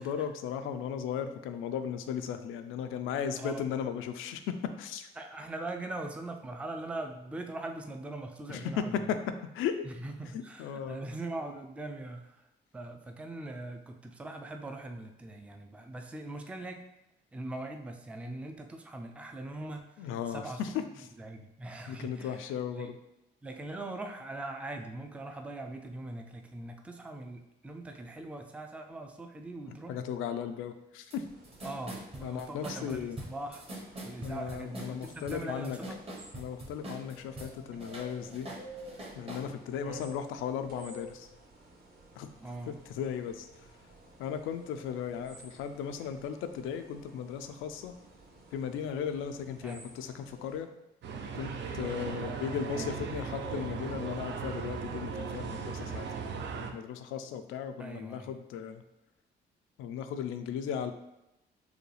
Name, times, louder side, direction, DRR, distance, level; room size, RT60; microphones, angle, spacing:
voice 1, 0.0-5.1 8.5-9.2 9.5-9.8 10.6-11.0 20.0-20.7 21.9-23.0 29.9-31.2 32.2-33.2 34.2-35.8 36.4-38.5 39.2-41.3 42.2-42.3 42.7-43.5 44.2-47.9 48.5-50.7 51.3-56.1 56.6-58.8 59.8-60.9, left 8 dB, 90° left, 8 dB, 0.4 m, -36 dB
voice 2, 5.2-9.1 9.8-12.5 12.7-16.8 17.3-20.6 21.2-22.9 23.4-30.0 31.6-33.6 34.0-36.0 37.7-37.8 39.8-40.0 42.4-42.8 49.6-49.9 52.2-52.5 57.8-58.3, right 2 dB, 5° right, 4 dB, 0.4 m, -41 dB
sound 1, 31.1-31.2 31.4-37.5 37.8-39.5, right 1 dB, 30° right, 1.0 m, -43 dB
sound 2, 31.2-50.6, equal, 45° right, 1.2 m, -53 dB
sound 3, 51.0-56.7, right 5 dB, 65° right, 0.5 m, -37 dB
4.8 x 2.3 x 3.2 m, 0.90 s
cardioid pair, 90°, 20 cm